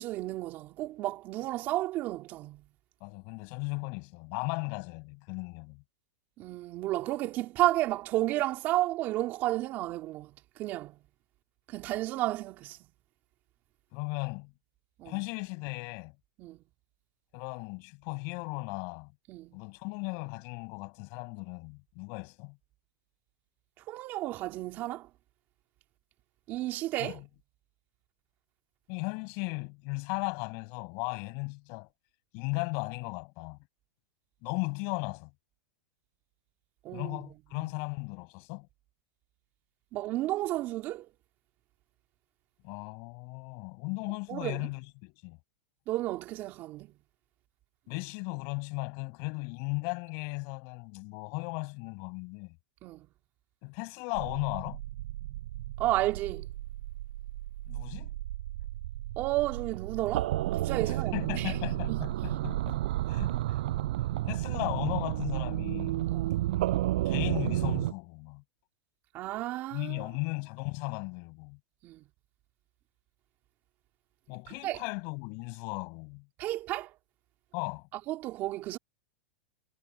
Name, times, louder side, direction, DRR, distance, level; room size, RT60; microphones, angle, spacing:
voice 1, 0.0-2.6 6.4-10.3 10.6-11.0 11.7-12.8 15.0-15.1 16.4-16.6 19.3-19.6 23.9-25.1 26.5-27.2 36.8-37.2 37.6-37.7 39.9-41.1 44.3-44.7 45.9-46.9 52.8-53.1 55.8-56.5 59.2-61.5 61.9-62.0 66.1-66.4 69.1-70.0 71.8-72.0 74.5-74.8 76.4-76.9 77.9-78.8, right 16 dB, 35° right, 3.5 m, -32 dB
voice 2, 3.0-5.8 13.9-14.5 15.0-16.1 17.3-19.1 19.5-22.6 27.0-27.1 28.9-31.9 32.3-33.6 34.4-35.3 36.9-38.7 42.6-45.4 47.9-52.6 53.6-54.8 57.7-58.1 60.9-62.8 63.1-63.6 64.3-66.1 67.0-68.4 69.7-71.6 74.3-76.3 77.5-77.9, left 34 dB, 45° left, 6.3 m, -36 dB
sound 1, 54.1-67.9, right 15 dB, 65° right, 7.9 m, -32 dB
supercardioid pair, 145°, 5 cm